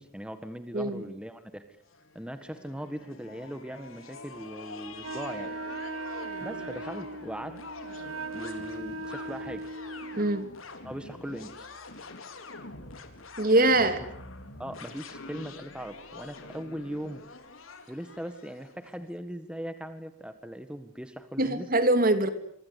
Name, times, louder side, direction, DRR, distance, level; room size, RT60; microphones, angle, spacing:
voice 1, 0.0-1.8 2.2-5.5 6.4-7.6 8.3-9.7 10.8-11.7 13.8-14.1 14.6-17.2 17.9-21.7, equal, 5° right, 9 dB, 1.7 m, -39 dB
sound 1, 1.9-19.0, left 3 dB, 85° left, 4.3 m, -45 dB
Wind instrument woodwind instrument, 5.0-10.5, right 3 dB, 80° right, 1.3 m, -39 dB
voice 2, 13.4-14.0 21.4-22.3, right 2 dB, 45° right, 10 dB, 3.0 m, -23 dB
27.0 x 25.0 x 8.4 m, 0.67 s
head